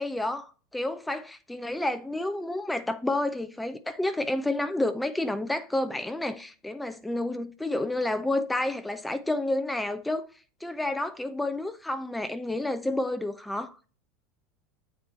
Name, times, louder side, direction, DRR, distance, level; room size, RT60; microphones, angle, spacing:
voice 1, 0.0-10.3 10.6-13.8, left 1 dB, 5° left, 0.5 m, -30 dB
7.7 x 4.3 x 4.3 m
supercardioid pair, 130°, 0 cm